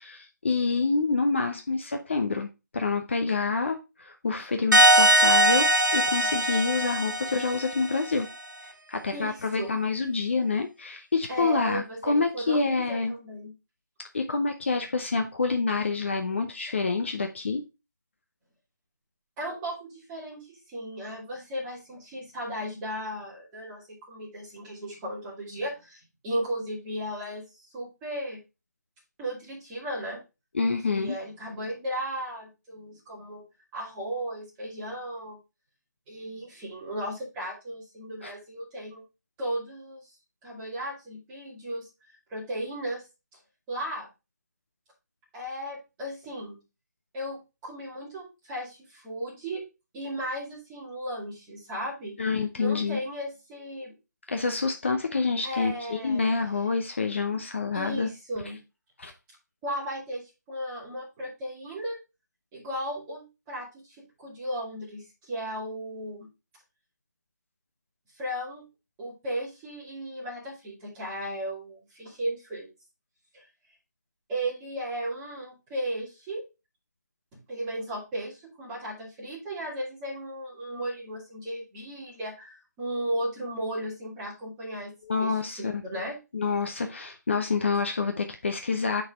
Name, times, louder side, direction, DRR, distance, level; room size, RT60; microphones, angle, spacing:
voice 1, 0.0-8.3 8.9-13.2 14.1-17.6 30.5-31.1 38.2-38.3 52.2-53.0 54.3-58.1 59.0-59.1 85.1-85.8 86.3-89.0, left 4 dB, 40° left, 0.7 m, -27 dB
sound 1, 4.7-8.1, right 1 dB, 90° right, 1.3 m, -21 dB
voice 2, 9.1-9.7 11.3-13.5 19.4-28.4 29.2-30.2 30.8-33.4 33.7-35.4 36.1-39.0 39.4-40.0 40.4-43.0 43.7-44.1 45.3-46.6 47.1-49.6 49.9-52.1 52.6-54.0 55.4-56.2 57.7-58.6 59.6-62.0 62.5-66.3 68.1-68.6 69.0-72.7 73.3-73.5 74.3-76.4 77.3-86.2 87.7-87.8, right 1 dB, 10° right, 2.0 m, -35 dB
7.4 x 4.1 x 3.5 m
figure-of-eight pair, 160°, 10 cm